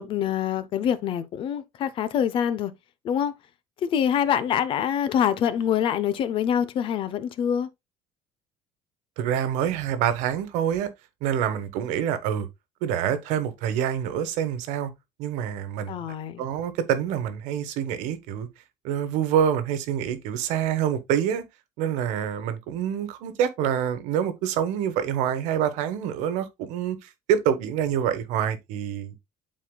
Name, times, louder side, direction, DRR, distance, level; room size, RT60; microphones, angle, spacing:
voice 1, 0.0-2.7 3.0-3.3 3.8-7.7 15.9-16.4, left 9 dB, 45° left, 0.7 m, -25 dB
voice 2, 9.2-10.9 11.2-12.5 12.8-14.9 15.2-15.9 16.4-18.5 18.8-21.5 21.8-29.2, right 9 dB, 75° right, 1.3 m, -26 dB
12.0 x 4.3 x 2.3 m
cardioid pair, 160°, 12 cm